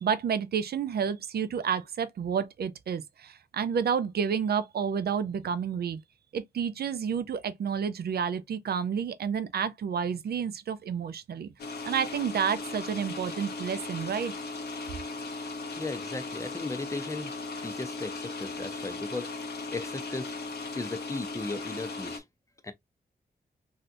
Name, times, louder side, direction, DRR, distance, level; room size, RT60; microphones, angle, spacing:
voice 1, 0.0-6.0 6.3-11.5 11.8-14.3, right 7 dB, 80° right, 0.5 m, -30 dB
sound 1, 11.6-22.2, left 3 dB, 85° left, 0.8 m, -37 dB
voice 2, 15.8-17.3 17.6-19.3 19.7-20.3 20.7-22.2 22.6-22.7, left 3 dB, 20° left, 0.5 m, -36 dB
3.3 x 2.7 x 2.5 m
wide cardioid pair, 125°, 16 cm